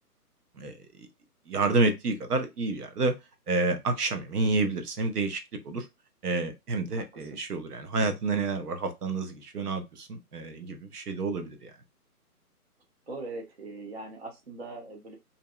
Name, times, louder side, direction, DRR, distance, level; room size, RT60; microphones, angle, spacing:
voice 1, 0.6-1.1 1.5-3.1 3.5-5.9 6.2-11.7, right 3 dB, 70° right, 0.8 m, -29 dB
voice 2, 6.9-7.4 13.1-15.2, right 3 dB, 45° right, 0.6 m, -41 dB
2.6 x 2.0 x 2.3 m
hypercardioid pair, 170°, 47 cm